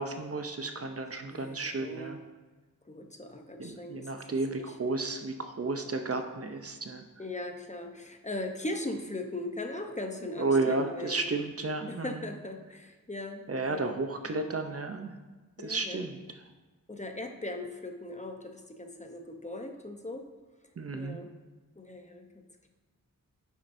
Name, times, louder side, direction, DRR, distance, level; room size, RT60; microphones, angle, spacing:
voice 1, 0.0-2.2 3.6-7.0 10.4-12.2 13.5-15.1 15.6-16.2 20.8-21.2, right 3 dB, 45° right, 6 dB, 0.6 m, -32 dB
voice 2, 1.3-2.2 2.9-4.8 7.2-11.4 11.9-14.0 15.6-16.0 16.9-20.2 20.9-21.3 21.8-22.4, left 2 dB, 20° left, 4 dB, 0.8 m, -39 dB
9.4 x 7.3 x 2.7 m, 1.2 s
wide cardioid pair, 90°, 34 cm